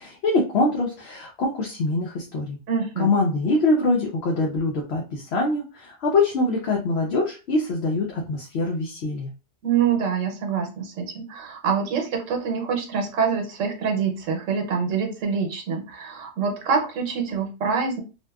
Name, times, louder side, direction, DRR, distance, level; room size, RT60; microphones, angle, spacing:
voice 1, 0.0-2.6 3.0-9.3, left 2 dB, 65° left, 0 dB, 0.7 m, -24 dB
voice 2, 2.7-3.1 9.6-18.0, right 6 dB, 85° right, 3 dB, 1.1 m, -25 dB
2.6 x 2.1 x 2.2 m, 0.32 s
omnidirectional pair, 1.3 m